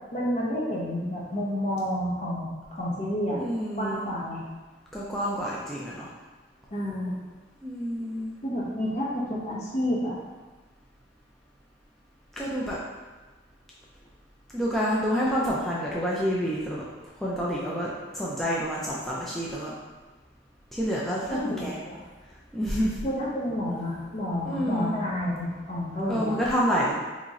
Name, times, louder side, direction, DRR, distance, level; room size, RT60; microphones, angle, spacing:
voice 1, 0.1-3.4 3.8-4.4 6.7-7.2 8.4-10.2 21.3-22.0 23.0-26.4, left 1 dB, 40° left, -5 dB, 0.8 m, -30 dB
voice 2, 3.3-4.0 4.9-6.1 7.6-8.3 12.4-12.8 14.5-16.8 17.2-19.7 20.7-21.8 22.5-23.0 24.4-24.9 26.1-26.9, equal, ahead, -7 dB, 0.3 m, -28 dB
2.9 x 2.4 x 3.9 m, 1.3 s
head